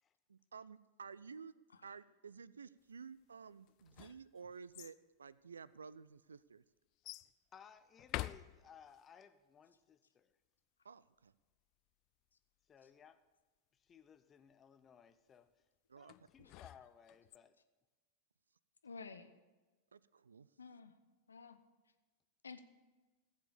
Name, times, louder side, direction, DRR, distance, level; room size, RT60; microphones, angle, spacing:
voice 1, 0.3-6.6 10.8-11.3 15.9-16.1 19.9-20.5, right 5 dB, 70° right, 19 dB, 0.4 m, -53 dB
sound 1, 3.7-5.0 5.8-5.9 7.0-7.3 8.0-9.0 16.1-17.4, left 17 dB, 40° left, 0.3 m, -47 dB
voice 2, 7.5-10.3 12.7-13.2 13.7-15.5 16.0-17.6, left 7 dB, 25° left, 11 dB, 0.8 m, -61 dB
voice 3, 18.8-19.3 20.6-21.0 21.3-21.6 22.4-22.6, left 4 dB, 75° left, 10 dB, 0.9 m, -52 dB
16.0 x 7.4 x 6.9 m, 1.2 s
figure-of-eight pair, 90°, 0 cm